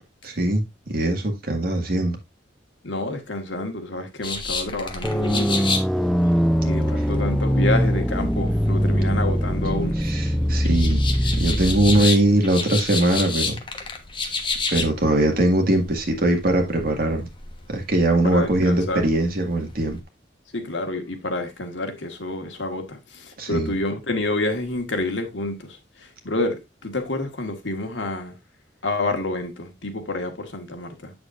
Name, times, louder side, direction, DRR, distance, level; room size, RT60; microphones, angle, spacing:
voice 1, 0.2-0.6 0.9-2.2 10.0-13.6 14.7-17.2 17.7-20.0 23.4-23.7, right 1 dB, 55° right, 1.9 m, -21 dB
voice 2, 2.8-5.8 6.6-10.0 18.2-19.0 20.5-28.4 28.8-31.1, left 2 dB, 85° left, 1.6 m, -28 dB
sound 1, 4.2-20.0, left 4 dB, 25° left, 1.2 m, -32 dB
sound 2, 5.0-12.1, equal, ahead, 0.4 m, -22 dB
8.1 x 6.9 x 2.5 m
head